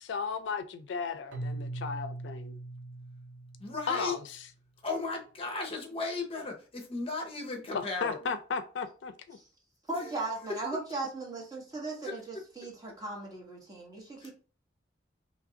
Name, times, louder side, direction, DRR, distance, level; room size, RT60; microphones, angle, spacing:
voice 1, 0.0-2.6 3.9-4.2 7.7-9.4, left 5 dB, 80° left, 0.4 m, -35 dB
Keyboard (musical), 1.3-4.3, right 2 dB, 80° right, 0.6 m, -40 dB
voice 2, 3.6-4.2 4.8-8.2 10.0-10.1 12.0-12.1 14.2-14.3, left 3 dB, 35° left, 0.7 m, -35 dB
voice 3, 9.9-14.3, right 3 dB, 20° right, 1.2 m, -37 dB
3.0 x 2.5 x 3.7 m
head